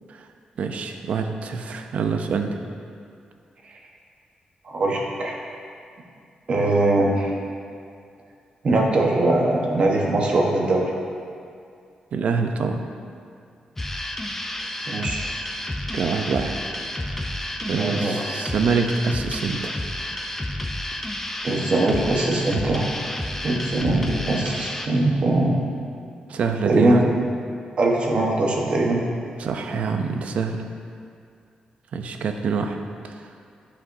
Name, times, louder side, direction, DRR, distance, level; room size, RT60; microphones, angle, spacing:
voice 1, 0.6-2.6 12.1-12.8 15.9-16.6 17.0-17.3 17.6-19.7 20.0-20.2 26.3-27.0 29.4-30.6 31.9-32.8 33.0-33.1, right 5 dB, 65° right, 6 dB, 0.5 m, -25 dB
voice 2, 4.6-5.4 6.5-7.3 8.6-10.9 14.9-15.3 17.7-18.2 21.4-22.9 23.4-25.6 26.6-27.1 27.8-29.0, right 2 dB, 45° right, -1 dB, 1.1 m, -21 dB
sound 1, 13.8-24.9, left 1 dB, 15° left, 0.5 m, -30 dB
11.0 x 5.0 x 2.6 m, 2.3 s
cardioid pair, 125°, 2 cm